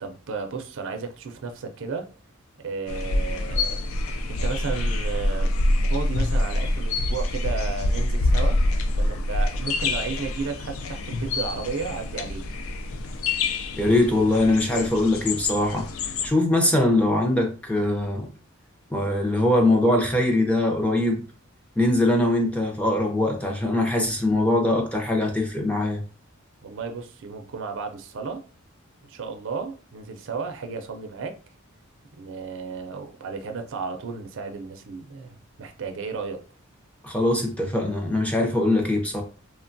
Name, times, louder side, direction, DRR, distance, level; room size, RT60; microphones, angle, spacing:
voice 1, 0.0-2.1 2.6-3.8 4.3-5.5 5.9-8.6 9.0-12.4 26.6-28.4 29.1-31.4 32.1-36.4, right 5 dB, 65° right, 0.4 m, -33 dB
sound 1, 2.9-16.3, left 2 dB, 70° left, 0.4 m, -26 dB
voice 2, 13.8-15.9 16.2-18.3 18.9-21.2 21.8-26.0 37.0-39.2, left 1 dB, 5° left, 0.5 m, -22 dB
3.0 x 2.2 x 2.5 m
head